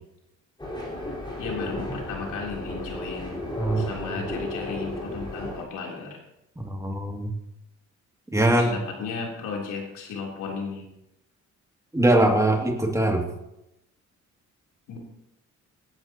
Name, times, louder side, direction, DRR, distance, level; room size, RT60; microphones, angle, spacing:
sound 1, 0.6-5.6, left 1 dB, 15° left, 4.6 m, -34 dB
voice 1, 1.4-3.4 3.8-6.2 8.4-10.8 14.9-15.0, left 4 dB, 90° left, -1 dB, 3.6 m, -34 dB
voice 2, 6.6-7.3 8.3-8.7 11.9-13.2, right 1 dB, 10° right, 2 dB, 2.6 m, -22 dB
17.5 x 12.0 x 3.0 m, 0.86 s
cardioid pair, 90°, 30 cm